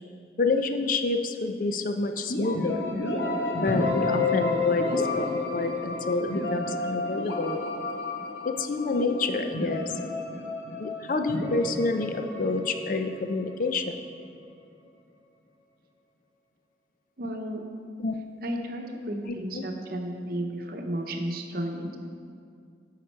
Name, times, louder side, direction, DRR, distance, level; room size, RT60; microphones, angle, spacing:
voice 1, 0.4-2.9 3.6-7.6 8.4-9.9 10.8-14.0 18.0-18.1 19.3-19.6, left 3 dB, 50° left, 7 dB, 0.5 m, -28 dB
sound 1, 2.3-14.0, left 2 dB, 85° left, 1.1 m, -30 dB
voice 2, 17.2-17.6 18.4-22.0, right 1 dB, 55° right, 3 dB, 0.9 m, -33 dB
9.6 x 6.5 x 4.5 m, 2.3 s
head